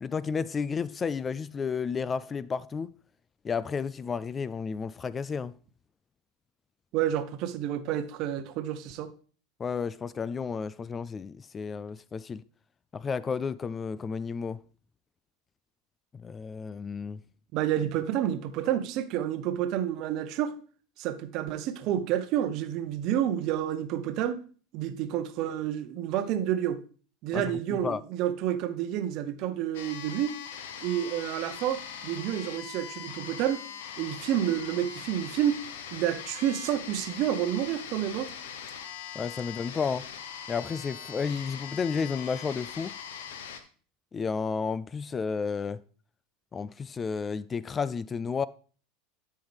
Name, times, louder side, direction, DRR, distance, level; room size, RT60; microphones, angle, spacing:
voice 1, 0.0-2.9 3.4-5.5 9.6-12.4 12.9-14.6 16.1-17.2 27.3-28.0 39.2-40.1 40.5-42.9 44.1-45.8 46.5-48.5, left 5 dB, 25° left, 0.3 m, -32 dB
voice 2, 6.9-9.1 17.5-20.5 21.0-24.4 24.7-26.8 27.2-30.3 30.8-33.7 34.0-35.6 35.9-38.3, right 11 dB, 55° right, 0.8 m, -29 dB
sound 1, 29.7-43.6, left 8 dB, 80° left, 0.9 m, -41 dB
11.5 x 5.6 x 3.4 m
hypercardioid pair, 100°, 0 cm